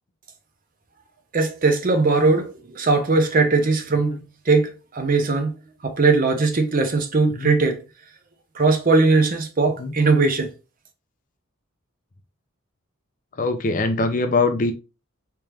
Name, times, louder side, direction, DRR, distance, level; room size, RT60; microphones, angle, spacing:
voice 1, 1.3-4.2 4.5-5.5 5.8-7.8 8.6-10.5, right 3 dB, 40° right, 0.6 m, -19 dB
voice 2, 13.4-14.7, left 3 dB, 40° left, 0.4 m, -22 dB
3.4 x 2.9 x 3.3 m
head